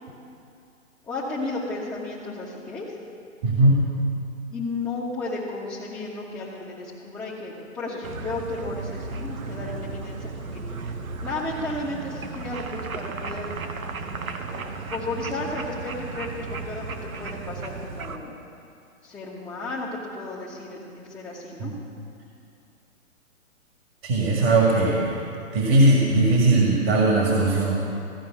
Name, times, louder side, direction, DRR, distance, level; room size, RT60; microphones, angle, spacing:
voice 1, 1.0-3.0 4.5-10.8 11.2-13.5 14.5-14.6 14.9-18.3 19.0-21.7, left 2 dB, 5° left, -10 dB, 1.2 m, -33 dB
voice 2, 3.4-3.8 21.6-21.7 24.0-25.2 25.5-27.8, right 2 dB, 45° right, -2 dB, 1.9 m, -19 dB
sound 1, 8.0-18.2, right 4 dB, 85° right, 1.0 m, -35 dB
14.5 x 5.1 x 9.0 m, 2.5 s
hypercardioid pair, 135°, 41 cm